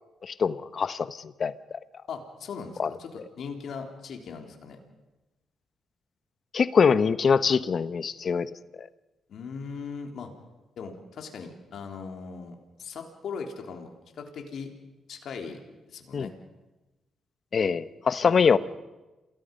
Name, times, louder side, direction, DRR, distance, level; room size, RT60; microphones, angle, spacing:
voice 1, 0.2-1.5 2.8-2.9 6.5-8.5 8.8-8.9 16.1-16.3 17.5-18.6, left 6 dB, 55° left, 15 dB, 1.0 m, -23 dB
voice 2, 2.1-4.8 9.3-10.3 10.8-14.7 15.1-15.6 15.9-16.3 18.2-18.6, left 5 dB, 70° left, 4 dB, 3.7 m, -39 dB
28.0 x 19.5 x 5.5 m, 1.1 s
supercardioid pair, 60°, 0 cm